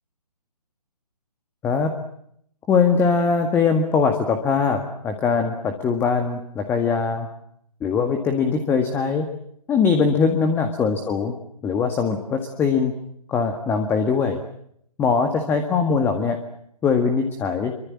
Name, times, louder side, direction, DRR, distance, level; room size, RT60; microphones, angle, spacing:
voice 1, 2.7-7.3 7.8-9.3 9.7-11.3 11.6-12.9 13.3-14.4 15.0-16.4 16.8-17.7, left 5 dB, 10° left, 6 dB, 1.9 m, -21 dB
27.5 x 24.5 x 7.6 m, 0.70 s
figure-of-eight pair, 140°, 21 cm